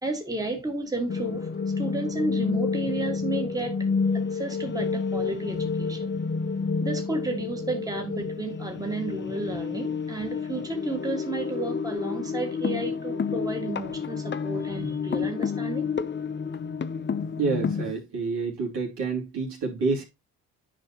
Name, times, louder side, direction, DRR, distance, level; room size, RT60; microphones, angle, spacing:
voice 1, 0.0-3.9 4.1-6.1 6.8-15.9, right 2 dB, 10° right, 1.9 m, -32 dB
sound 1, 1.1-17.9, left 5 dB, 25° left, 0.6 m, -29 dB
voice 2, 17.4-20.0, right 4 dB, 60° right, 3.0 m, -28 dB
10.0 x 5.1 x 2.9 m
hypercardioid pair, 55°, 46 cm